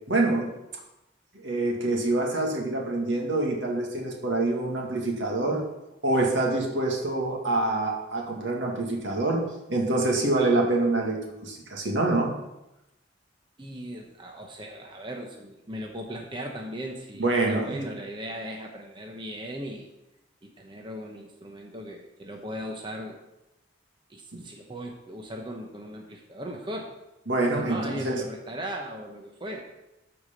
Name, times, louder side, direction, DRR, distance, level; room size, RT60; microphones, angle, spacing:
voice 1, 0.1-0.5 1.3-5.6 6.0-9.4 9.7-12.3 17.2-17.7 27.3-28.2, right 2 dB, 80° right, 0 dB, 2.1 m, -26 dB
voice 2, 13.6-19.9 20.4-23.2 24.1-26.9 27.6-29.6, equal, 25° right, 1 dB, 0.9 m, -38 dB
12.5 x 4.9 x 5.2 m, 0.93 s
head